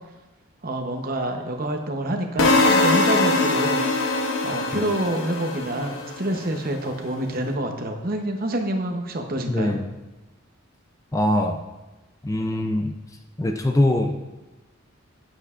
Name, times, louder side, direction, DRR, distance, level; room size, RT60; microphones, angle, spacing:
voice 1, 0.6-3.8 4.4-9.8, right 1 dB, 45° right, 4 dB, 0.8 m, -27 dB
sound 1, 2.4-6.5, left 2 dB, 65° left, 0.8 m, -22 dB
voice 2, 9.5-9.8 11.1-11.6 12.2-13.0 13.4-14.2, left 1 dB, 15° left, 5 dB, 0.4 m, -22 dB
9.8 x 9.1 x 2.5 m, 1.1 s
head